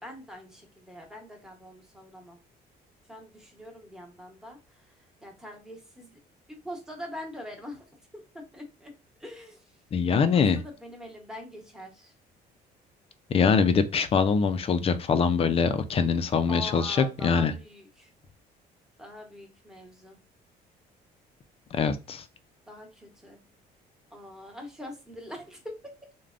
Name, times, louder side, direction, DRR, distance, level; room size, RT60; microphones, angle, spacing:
voice 1, 0.0-2.4 3.1-6.2 6.5-7.9 8.1-8.9 9.2-9.8 10.2-12.1 16.5-18.1 19.0-20.2 22.7-23.4 24.1-25.9, left 1 dB, 5° right, 1.0 m, -43 dB
voice 2, 9.9-10.6 13.3-17.5 21.7-22.2, left 5 dB, 35° left, 0.4 m, -23 dB
3.3 x 2.1 x 2.5 m
cardioid pair, 110°, 17 cm